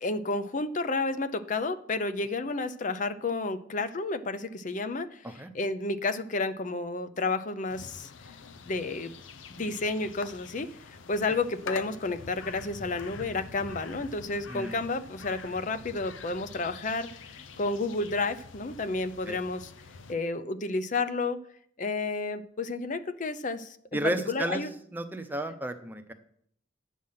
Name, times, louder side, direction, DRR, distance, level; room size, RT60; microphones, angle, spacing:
voice 1, 0.0-8.1 8.7-9.2 9.5-19.7 20.1-21.4 21.8-24.0 24.3-24.7, left 3 dB, 40° left, 11 dB, 0.6 m, -31 dB
sound 1, 7.7-20.1, left 5 dB, 90° left, 0.7 m, -45 dB
voice 2, 14.5-14.8 19.3-19.4 23.9-24.6 24.9-26.1, right 1 dB, 10° right, 6 dB, 0.8 m, -32 dB
9.2 x 7.5 x 5.7 m, 0.65 s
head